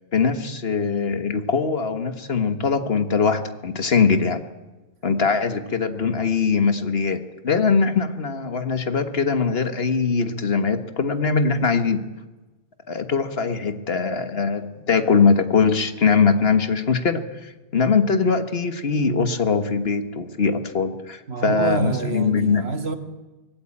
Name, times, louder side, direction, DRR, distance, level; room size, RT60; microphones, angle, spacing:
voice 1, 0.1-4.4 5.0-12.1 12.9-22.6, left 5 dB, 70° left, 1.7 m, -21 dB
voice 2, 21.3-22.9, right 3 dB, 80° right, 2.1 m, -26 dB
24.5 x 18.5 x 8.7 m
omnidirectional pair, 1.1 m